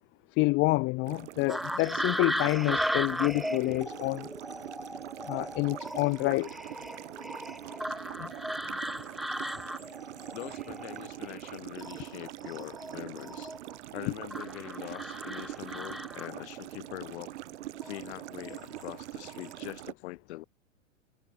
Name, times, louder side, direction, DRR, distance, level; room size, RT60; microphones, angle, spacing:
voice 1, 0.4-4.3 5.3-6.5 8.2-8.3, left 24 dB, 30° left, 0.7 m, -28 dB
sound 1, 1.1-19.9, right 15 dB, 60° right, 2.2 m, -43 dB
sound 2, 1.5-11.5 11.8-13.8 14.3-16.6 17.7-18.0 18.4-18.9 19.2-19.5, equal, ahead, 2.1 m, -37 dB
voice 2, 10.3-13.5 13.9-17.3 17.8-20.4, left 18 dB, 55° left, 5.3 m, -43 dB
hypercardioid pair, 110°, 39 cm